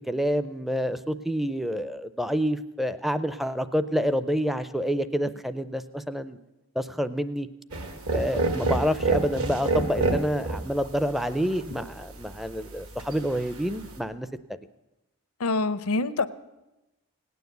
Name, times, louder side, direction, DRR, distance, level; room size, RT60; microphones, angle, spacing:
voice 1, 0.1-6.4 6.8-7.5 8.1-14.3, equal, ahead, 13 dB, 0.5 m, -28 dB
sound 1, 7.7-14.0, right 2 dB, 70° right, 2.0 m, -30 dB
voice 2, 15.4-16.3, left 3 dB, 80° left, 13 dB, 0.7 m, -25 dB
18.0 x 9.4 x 8.0 m, 0.98 s
head